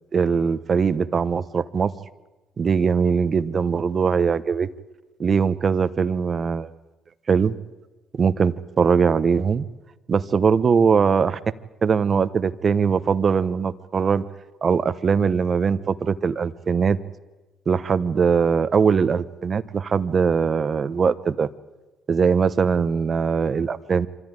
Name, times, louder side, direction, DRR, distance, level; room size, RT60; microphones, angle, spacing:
voice 1, 0.1-1.9 2.6-4.7 5.2-6.7 7.3-7.5 8.1-9.6 10.1-11.4 11.8-14.2 14.6-17.0 17.7-21.5 22.1-24.1, right 6 dB, 45° right, 13 dB, 1.0 m, -21 dB
25.0 x 14.0 x 9.7 m, 1.1 s
supercardioid pair, 70°, 0 cm